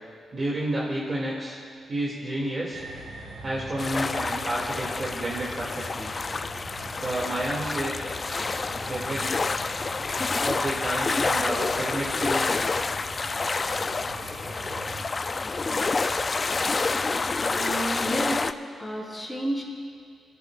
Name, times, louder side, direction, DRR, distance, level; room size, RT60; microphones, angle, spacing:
voice 1, 0.3-1.6 1.9-2.8 3.4-6.1 7.0-8.0 8.9-9.3 10.4-12.6, right 1 dB, 40° right, -5 dB, 2.4 m, -30 dB
sound 1, 2.7-15.1, right 3 dB, 90° right, 1.9 m, -44 dB
sound 2, 3.8-18.5, left 3 dB, 40° left, 0.4 m, -28 dB
voice 2, 17.5-18.5 18.8-19.6, right 1 dB, 5° left, -6 dB, 3.9 m, -30 dB
26.0 x 13.5 x 2.5 m, 2.3 s
cardioid pair, 80°, 0 cm